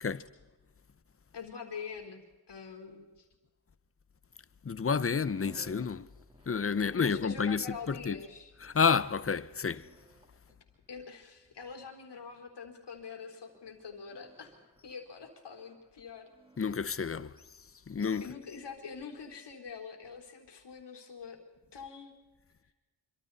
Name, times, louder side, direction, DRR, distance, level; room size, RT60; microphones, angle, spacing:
voice 1, 1.3-3.3 6.8-8.5 10.5-10.6 10.9-14.6 14.8-16.3 18.2-21.4 21.7-22.1, left 5 dB, 90° left, 4.0 m, -45 dB
voice 2, 4.6-6.1 6.5-8.2 8.6-9.9 16.6-17.3 17.9-18.3, left 5 dB, 35° left, 0.8 m, -30 dB
sound 1, 5.3-17.5, right 1 dB, 15° right, 3.6 m, -59 dB
26.5 x 25.0 x 4.2 m
wide cardioid pair, 105°, 40 cm